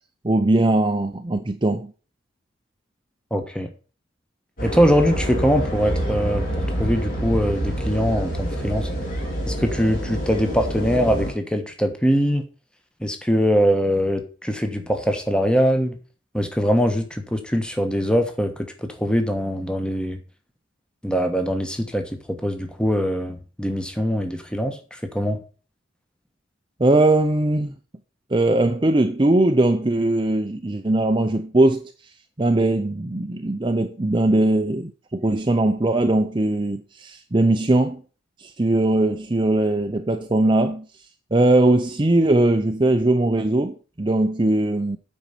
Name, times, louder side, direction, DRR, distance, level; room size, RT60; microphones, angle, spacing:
voice 1, 0.2-1.9 26.8-27.7 28.3-31.8 32.4-38.0 38.4-40.9 41.3-45.0, right 2 dB, 25° right, 0.6 m, -20 dB
voice 2, 3.3-3.7 4.6-6.4 6.8-8.9 9.5-12.4 13.0-16.0 16.3-18.5 18.8-20.2 21.0-24.8 25.1-25.4, equal, 5° left, 1.2 m, -22 dB
sound 1, 4.6-11.3, equal, 45° left, 3.8 m, -27 dB
9.0 x 5.5 x 6.7 m
head